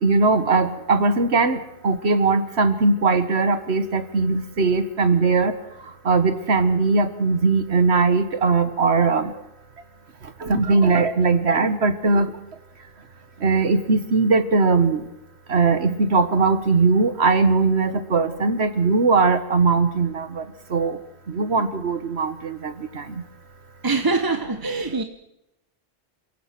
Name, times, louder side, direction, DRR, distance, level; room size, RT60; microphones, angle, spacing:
voice 1, 0.0-1.6 1.8-5.5 6.0-9.3 10.4-12.3 13.4-15.0 15.5-20.4 20.7-21.0 21.3-23.0, right 4 dB, 65° right, 1.7 m, -20 dB
voice 2, 23.8-25.0, right 3 dB, 20° right, 0.8 m, -23 dB
27.5 x 16.0 x 6.0 m
omnidirectional pair, 1.2 m